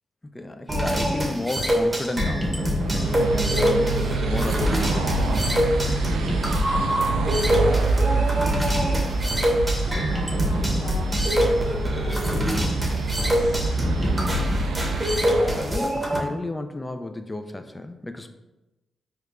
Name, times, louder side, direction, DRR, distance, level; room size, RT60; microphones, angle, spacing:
voice 1, 0.3-2.6 2.9-6.1 15.6-18.3, left 2 dB, 20° left, 8 dB, 0.3 m, -33 dB
sound 1, 0.7-16.2, equal, 15° right, 0.8 m, -24 dB
sound 2, 2.6-16.1, right 3 dB, 85° right, 0.3 m, -26 dB
voice 2, 7.5-14.6, left 1 dB, 75° left, -4 dB, 1.2 m, -42 dB
4.5 x 2.3 x 2.4 m, 1.0 s
supercardioid pair, 50°, 0 cm